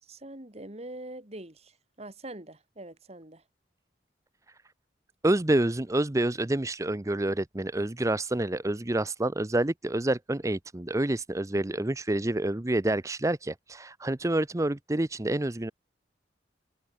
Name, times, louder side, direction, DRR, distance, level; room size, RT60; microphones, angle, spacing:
voice 1, 0.0-3.4, right 1 dB, 35° right, 3.1 m, -44 dB
voice 2, 5.2-15.7, right 1 dB, 15° right, 0.6 m, -28 dB
head